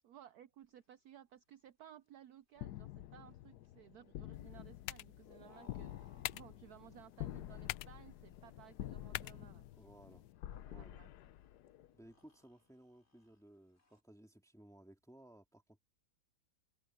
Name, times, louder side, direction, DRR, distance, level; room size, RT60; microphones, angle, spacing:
voice 1, 0.0-9.7 10.5-11.1, right 11 dB, 80° right, 0.8 m, -59 dB
sound 1, 0.6-14.0, left 5 dB, 30° left, 3.0 m, -71 dB
sound 2, 2.6-12.1, left 13 dB, 70° left, 1.0 m, -49 dB
sound 3, 4.3-10.3, left 17 dB, 85° left, 1.4 m, -49 dB
voice 2, 9.8-10.3 10.7-11.0 11.9-15.8, right 1 dB, ahead, 1.9 m, -60 dB
omnidirectional pair, 2.3 m